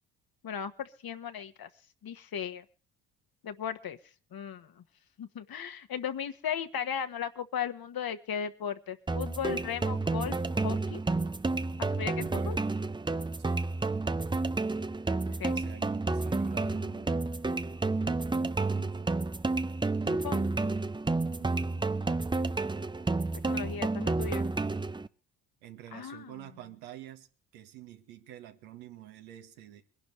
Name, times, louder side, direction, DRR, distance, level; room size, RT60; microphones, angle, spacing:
voice 1, 0.4-1.7 2.0-2.6 3.4-4.0 4.3-4.7 5.2-11.0 11.8-12.1 12.5-12.6 15.4-15.5 20.0-20.5 23.4-24.5 25.9-26.3, left 8 dB, 45° left, 1.5 m, -36 dB
sound 1, 9.1-25.1, right 3 dB, 10° right, 0.7 m, -30 dB
voice 2, 11.0-11.4 11.7-11.9 12.2-12.6 13.4-13.6 15.3-17.3 18.7-19.3 21.3-21.9 25.6-27.3 27.5-29.8, right 13 dB, 80° right, 1.8 m, -49 dB
23.5 x 11.5 x 3.3 m
hypercardioid pair, 55°, 49 cm